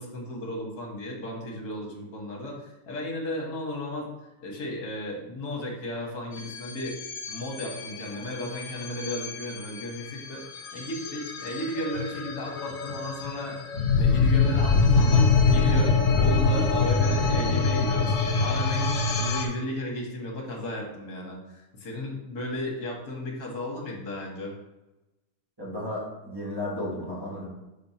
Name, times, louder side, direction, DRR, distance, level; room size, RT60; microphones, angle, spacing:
voice 1, 0.0-4.1 4.4-10.4 10.7-13.7 14.0-18.1 18.4-24.5, left 1 dB, 50° left, -1 dB, 1.7 m, -34 dB
sound 1, 6.4-19.4, left 4 dB, 70° left, 0.7 m, -24 dB
voice 2, 25.6-27.5, left 1 dB, 10° right, -6 dB, 1.5 m, -33 dB
4.5 x 4.2 x 5.7 m, 1.0 s
omnidirectional pair, 2.4 m